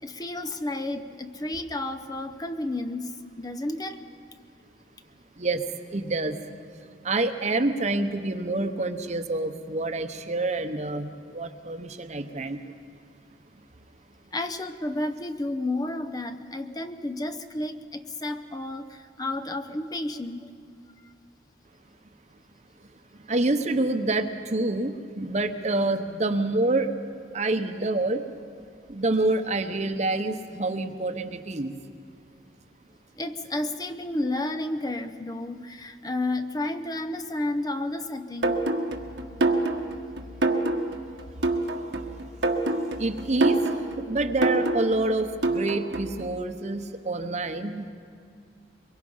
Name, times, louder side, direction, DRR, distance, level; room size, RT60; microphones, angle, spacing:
voice 1, 0.0-3.1 3.4-4.1 14.3-20.5 33.2-38.6, left 2 dB, 20° left, 9 dB, 0.7 m, -31 dB
voice 2, 5.9-6.4 7.0-12.6 23.3-26.9 27.3-28.2 28.9-31.8 43.0-43.6 44.0-47.9, right 2 dB, 40° right, 8 dB, 1.0 m, -27 dB
sound 1, 38.4-46.2, right 2 dB, 80° right, 1.5 m, -26 dB
23.0 x 22.5 x 5.6 m, 2.3 s
head